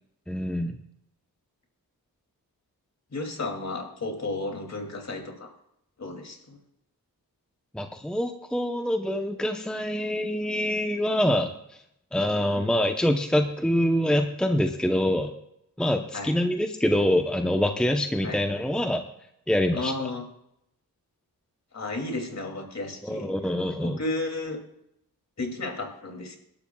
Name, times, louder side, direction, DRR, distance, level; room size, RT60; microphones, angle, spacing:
voice 1, 0.3-0.8 7.7-11.5 12.1-15.3 15.8-19.0 19.5-19.9 23.0-24.0, left 1 dB, ahead, 5 dB, 0.8 m, -25 dB
voice 2, 3.1-5.5 6.0-6.6 12.6-12.7 16.1-16.3 18.2-18.4 19.7-20.3 21.7-23.3 23.8-24.6 25.4-26.4, left 2 dB, 45° left, 3 dB, 2.7 m, -33 dB
25.0 x 12.0 x 2.3 m, 0.79 s
wide cardioid pair, 110°, 36 cm